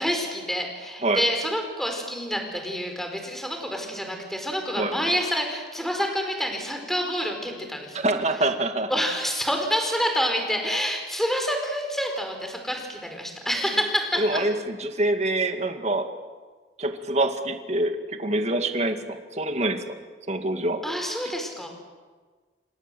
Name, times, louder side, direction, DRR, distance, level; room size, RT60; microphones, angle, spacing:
voice 1, 0.0-8.0 8.9-14.2 20.8-21.7, equal, ahead, 4 dB, 4.7 m, -27 dB
voice 2, 7.9-8.9 14.2-16.1 16.8-20.0 20.3-20.8, right 2 dB, 40° right, 7 dB, 2.1 m, -25 dB
29.0 x 24.5 x 7.8 m, 1.4 s
head